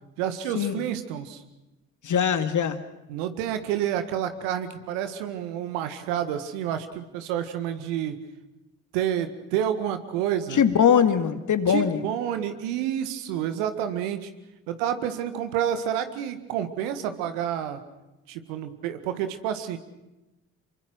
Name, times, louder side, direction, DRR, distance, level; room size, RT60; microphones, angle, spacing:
voice 1, 0.2-1.4 3.1-8.2 8.9-10.6 11.7-14.3 14.7-17.8 18.3-19.8, right 10 dB, 75° right, 9 dB, 1.9 m, -29 dB
voice 2, 2.0-2.8 10.5-12.0, left 8 dB, 50° left, 10 dB, 2.3 m, -21 dB
27.0 x 24.0 x 6.3 m, 1.0 s
figure-of-eight pair, 40°, 39 cm